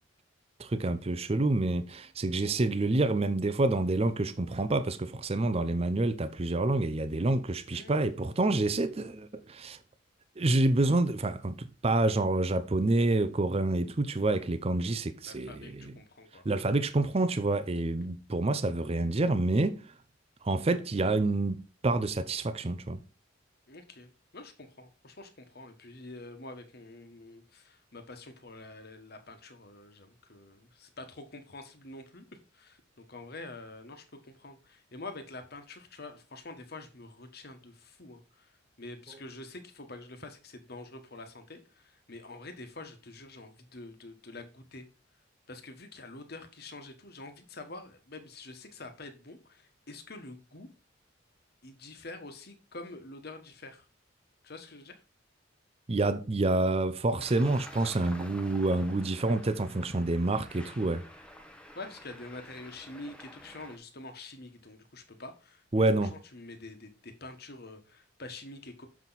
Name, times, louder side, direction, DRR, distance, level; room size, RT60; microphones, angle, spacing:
voice 1, 0.6-9.8 10.4-15.9 16.4-19.8 20.4-23.0 55.9-61.0 65.7-66.1, right 2 dB, 30° right, 0.6 m, -28 dB
voice 2, 7.7-8.2 9.0-9.1 15.2-16.4 23.7-38.5 38.8-44.9 45.5-50.7 51.6-53.8 54.4-55.0 61.7-65.8 66.3-68.9, left 2 dB, 55° left, 1.4 m, -46 dB
Traffic noise roadway noise, 57.2-63.8, equal, 5° left, 1.0 m, -50 dB
7.2 x 6.0 x 4.0 m
head